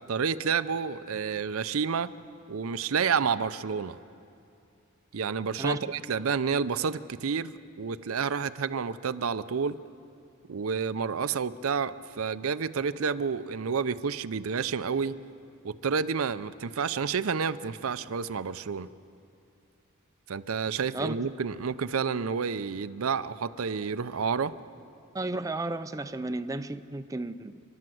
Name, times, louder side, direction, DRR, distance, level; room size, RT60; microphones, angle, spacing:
voice 1, 0.1-2.1 2.5-4.0 5.1-9.8 10.5-15.2 15.6-18.9 20.3-24.5, right 6 dB, 75° right, 13 dB, 0.6 m, -29 dB
voice 2, 25.1-27.6, right 2 dB, 15° right, 9 dB, 0.4 m, -33 dB
29.5 x 12.0 x 7.8 m, 2.5 s
head